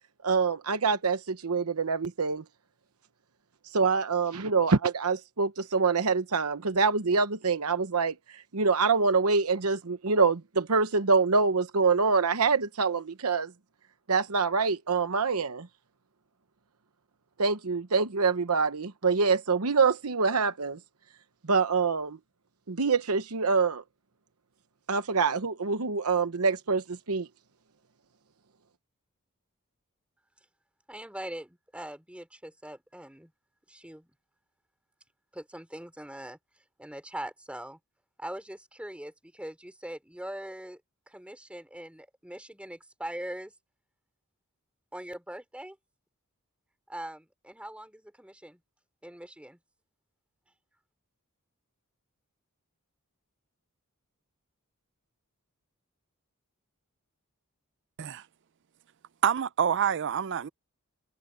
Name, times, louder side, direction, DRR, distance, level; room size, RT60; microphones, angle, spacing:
voice 1, 0.2-2.4 3.7-8.1 8.5-13.5 14.1-15.7 17.4-20.8 21.5-22.2 22.7-23.8 24.9-27.3, right 4 dB, 85° right, 1.0 m, -25 dB
voice 2, 30.9-33.3 33.7-34.1 35.3-36.4 36.8-37.8 38.2-40.8 41.1-43.5 44.9-45.8 46.9-48.6 49.0-49.6, right 1 dB, 5° right, 3.0 m, -41 dB
voice 3, 59.2-60.5, right 8 dB, 55° right, 0.5 m, -27 dB
head